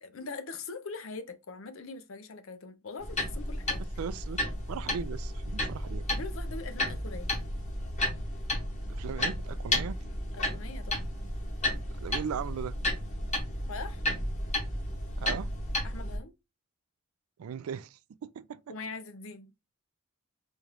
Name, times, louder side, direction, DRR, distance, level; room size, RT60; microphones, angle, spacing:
voice 1, 0.0-3.8 6.1-7.4 10.3-11.1 13.7-14.0 15.8-16.3 18.7-19.5, left 4 dB, 70° left, 0.6 m, -42 dB
sound 1, 3.0-16.2, left 1 dB, 35° left, 1.3 m, -33 dB
voice 2, 4.0-4.4 4.7-6.1 8.9-10.0 12.0-12.7 15.2-15.5 17.4-18.7, right 7 dB, 85° right, 0.3 m, -38 dB
4.1 x 2.5 x 3.3 m
head